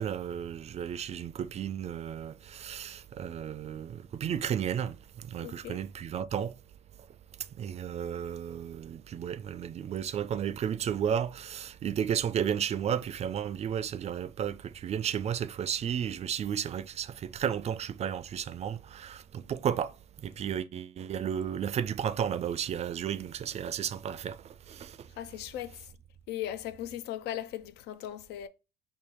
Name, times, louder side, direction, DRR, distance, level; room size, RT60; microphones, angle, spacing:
voice 1, 0.0-6.5 7.6-20.0 20.2-25.0, right 9 dB, 40° right, 0.4 m, -33 dB
voice 2, 5.4-5.8 25.2-25.9 26.3-28.5, left 12 dB, 80° left, 0.5 m, -38 dB
4.5 x 2.7 x 3.5 m
cardioid pair, 110°, 17 cm